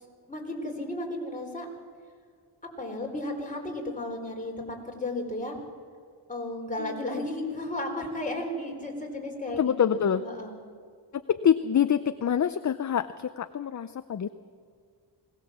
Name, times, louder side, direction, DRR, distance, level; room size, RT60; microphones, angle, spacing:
voice 1, 0.3-1.7 2.8-5.6 6.3-10.5, left 1 dB, 15° left, 0 dB, 3.7 m, -34 dB
voice 2, 6.8-7.2 9.6-10.2 11.3-14.3, left 8 dB, 40° left, 12 dB, 0.5 m, -26 dB
20.5 x 18.0 x 7.2 m, 2.1 s
wide cardioid pair, 115°, 49 cm